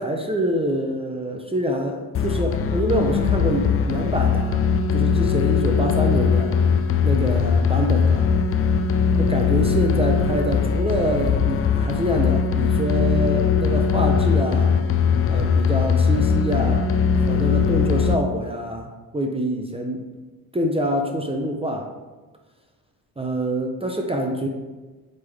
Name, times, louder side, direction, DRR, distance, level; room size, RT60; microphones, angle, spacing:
voice 1, 0.0-4.7 4.9-6.6 7.0-8.3 9.3-14.7 15.3-16.9 17.2-20.1 20.5-21.9 23.2-24.5, right 1 dB, 15° right, 2 dB, 0.5 m, -26 dB
sound 1, 2.1-18.1, left 6 dB, 35° left, 0.4 m, -20 dB
8.0 x 3.6 x 3.4 m, 1.2 s
cardioid pair, 110°, 39 cm